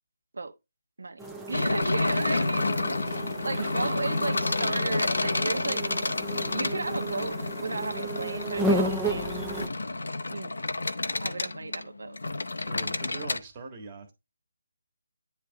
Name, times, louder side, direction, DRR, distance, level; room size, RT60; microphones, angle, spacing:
sound 1, 1.2-9.7, right 1 dB, 5° right, 0.6 m, -34 dB
sound 2, 1.5-13.4, left 2 dB, 85° left, 0.8 m, -30 dB
voice 1, 1.5-2.6 3.4-5.8 6.3-9.3 10.3-10.5 11.2-12.2, right 3 dB, 80° right, 1.0 m, -34 dB
voice 2, 2.1-2.6 3.0-4.0 12.6-14.1, right 3 dB, 25° right, 1.6 m, -42 dB
9.9 x 3.4 x 2.8 m
figure-of-eight pair, 165°, 0 cm